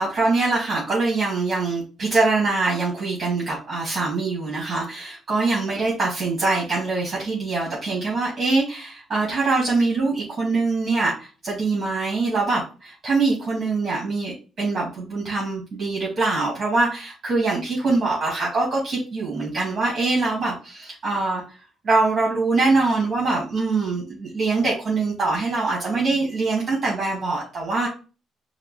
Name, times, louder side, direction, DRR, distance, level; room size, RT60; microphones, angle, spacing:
voice 1, 0.0-21.4 21.8-27.9, right 3 dB, 45° right, -4 dB, 1.6 m, -23 dB
4.9 x 2.0 x 3.1 m, 0.34 s
cardioid pair, 90°, 0 cm